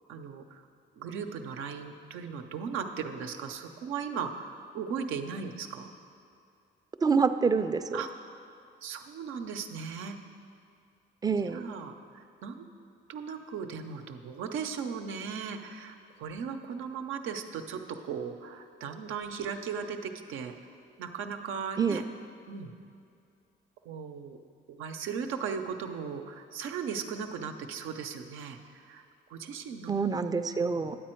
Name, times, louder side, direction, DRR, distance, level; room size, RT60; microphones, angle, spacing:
voice 1, 0.1-0.6 0.9-5.9 7.9-8.1 8.8-10.2 11.5-12.7 13.1-20.5 21.0-22.0 22.5-22.7 23.8-24.4 24.7-29.0 29.3-29.9, right 6 dB, 90° right, 5 dB, 0.7 m, -37 dB
voice 2, 7.0-8.0 11.2-11.6 21.8-22.0 29.9-31.0, right 5 dB, 20° right, 9 dB, 0.4 m, -26 dB
10.0 x 7.7 x 4.4 m, 2.5 s
cardioid pair, 90°, 20 cm